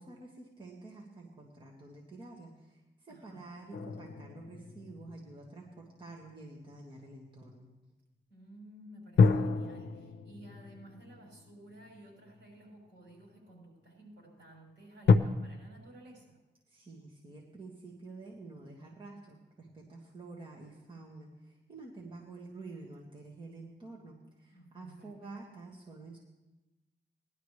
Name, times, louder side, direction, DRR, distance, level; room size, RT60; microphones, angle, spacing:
voice 1, 0.0-7.7 16.7-26.2, right 3 dB, 25° right, -3 dB, 1.8 m, -49 dB
voice 2, 3.1-3.5 8.3-16.4 24.5-25.1, right 1 dB, 70° right, -3 dB, 5.7 m, -54 dB
sound 1, 3.7-6.3 9.2-12.5 13.2-13.3 15.1-15.2, left 5 dB, 70° left, 0.6 m, -29 dB
19.0 x 11.5 x 3.3 m, 1.0 s
wide cardioid pair, 145°, 19 cm